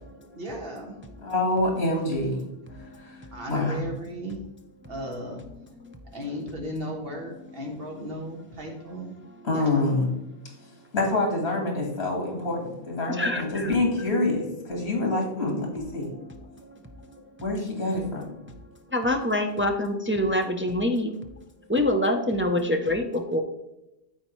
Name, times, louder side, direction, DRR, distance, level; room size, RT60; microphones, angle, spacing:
voice 1, 0.3-1.1 3.3-4.4 4.9-5.4 6.1-9.2 9.5-9.8, equal, 65° right, 1 dB, 1.5 m, -35 dB
voice 2, 1.2-2.5 3.0-3.2 3.5-3.9 9.4-10.1 10.9-16.1 17.4-18.3, left 2 dB, 80° left, 0 dB, 1.9 m, -26 dB
voice 3, 13.2-13.7 18.9-21.1 21.7-23.4, left 1 dB, 20° right, 4 dB, 0.4 m, -25 dB
12.5 x 4.3 x 3.1 m, 0.92 s
omnidirectional pair, 1.1 m